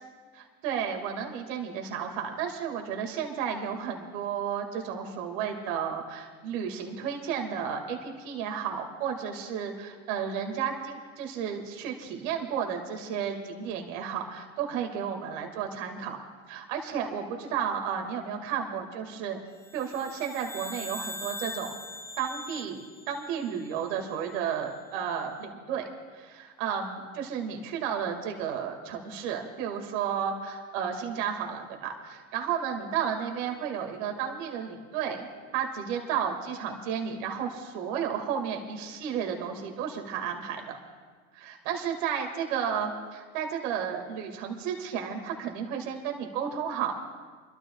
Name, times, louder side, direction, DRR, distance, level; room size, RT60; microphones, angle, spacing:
voice 1, 0.3-16.2 16.5-19.4 19.7-21.7 22.2-25.9 26.1-35.3 35.5-40.8 41.3-47.0, right 7 dB, 65° right, 3 dB, 2.1 m, -32 dB
sound 1, 19.6-24.2, left 1 dB, 5° left, 0.6 m, -42 dB
29.5 x 12.5 x 2.3 m, 1.5 s
hypercardioid pair, 95°, 40 cm